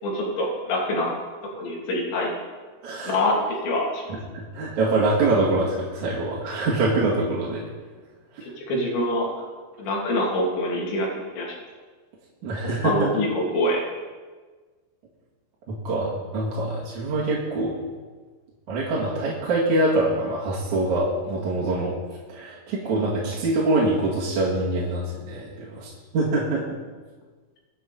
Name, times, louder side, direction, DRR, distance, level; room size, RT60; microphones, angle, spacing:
voice 1, 0.0-1.1 1.6-2.3 3.0-4.0 8.4-9.3 9.8-11.6 12.8-13.8, left 1 dB, 65° left, -2 dB, 5.0 m, -25 dB
voice 2, 2.8-3.1 4.1-7.6 8.3-8.5 12.4-13.1 15.7-17.7 18.7-21.9 22.3-26.8, right 2 dB, 50° right, -6 dB, 2.9 m, -24 dB
22.5 x 9.6 x 4.3 m, 1.4 s
omnidirectional pair, 5.7 m